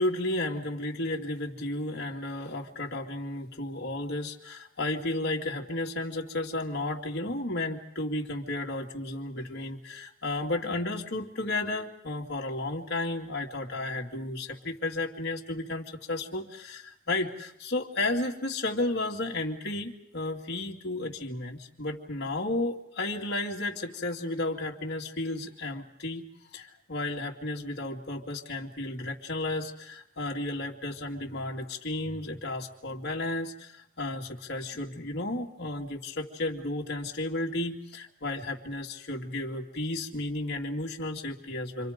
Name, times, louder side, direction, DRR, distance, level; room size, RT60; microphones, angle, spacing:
voice 1, 0.0-26.3 26.5-41.9, left 2 dB, 55° left, 0 dB, 2.6 m, -33 dB
29.5 x 25.0 x 5.3 m, 0.78 s
head